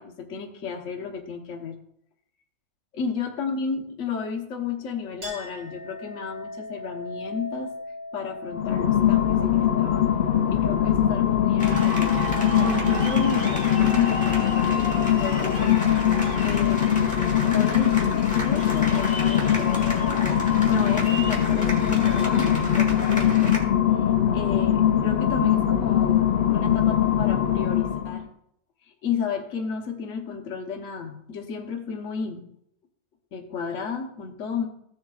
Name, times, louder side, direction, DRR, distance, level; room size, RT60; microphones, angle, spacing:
voice 1, 0.0-1.7 2.9-7.7 8.1-10.2 10.5-15.8 16.4-16.9 17.4-19.8 20.3-23.6 24.0-24.1 24.3-28.3 29.0-32.5 33.3-34.7, left 5 dB, 55° left, 1 dB, 1.4 m, -32 dB
Chink clink, 5.2-12.3, left 2 dB, 60° right, 3.3 m, -40 dB
sound 1, 8.5-28.2, left 10 dB, 80° left, 0.4 m, -22 dB
sound 2, 11.6-23.6, equal, 5° left, 1.4 m, -33 dB
15.0 x 7.2 x 2.4 m, 0.72 s
omnidirectional pair, 1.6 m